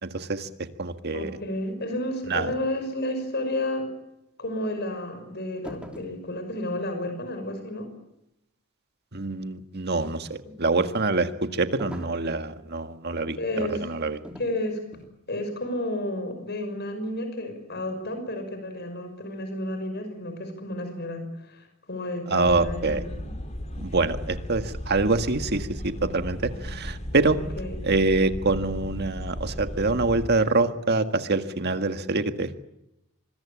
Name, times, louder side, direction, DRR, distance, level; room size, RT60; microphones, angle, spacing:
voice 1, 0.0-1.4 2.3-2.5 9.1-14.2 22.3-23.0 23.8-27.4 27.8-32.6, right 3 dB, 50° right, 8 dB, 1.7 m, -25 dB
voice 2, 1.1-3.9 4.4-7.9 10.7-10.9 13.4-13.8 14.4-14.8 15.3-23.3 27.6-27.8, left 1 dB, 50° left, 7 dB, 5.9 m, -31 dB
sound 1, 5.6-6.2 11.8-12.3 14.2-14.6 14.9-15.2, equal, 5° right, 2.9 m, -41 dB
sound 2, 22.5-30.3, equal, 35° left, 3.5 m, -35 dB
26.0 x 22.0 x 8.6 m, 0.86 s
head